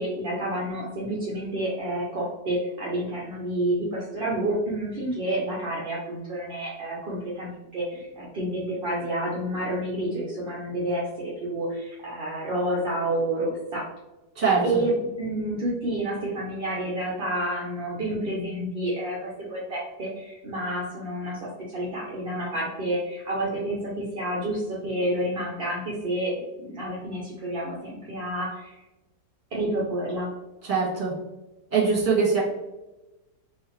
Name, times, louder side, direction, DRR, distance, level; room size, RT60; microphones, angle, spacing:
voice 1, 0.0-13.9 14.6-28.7 29.5-30.3, right 1 dB, 50° right, -4 dB, 0.7 m, -29 dB
voice 2, 30.6-31.1 31.7-32.4, right 5 dB, 30° right, -5 dB, 1.5 m, -22 dB
3.8 x 2.8 x 3.0 m, 1.0 s
omnidirectional pair, 1.8 m